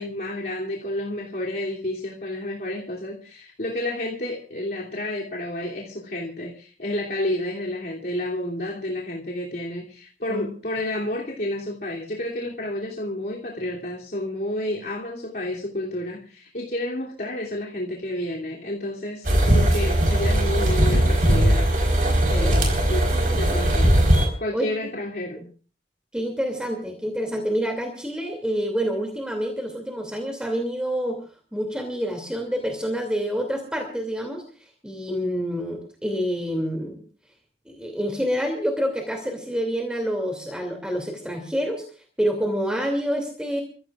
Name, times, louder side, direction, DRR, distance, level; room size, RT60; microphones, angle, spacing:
voice 1, 0.0-25.5, left 1 dB, 55° left, -4 dB, 3.0 m, -30 dB
sound 1, 19.2-24.3, right 1 dB, 50° right, 4.5 m, -19 dB
voice 2, 26.1-31.2 31.5-34.4 34.8-37.0 37.7-41.8 42.2-43.6, equal, 5° right, 2 dB, 2.8 m, -27 dB
29.5 x 15.5 x 2.5 m, 0.38 s
head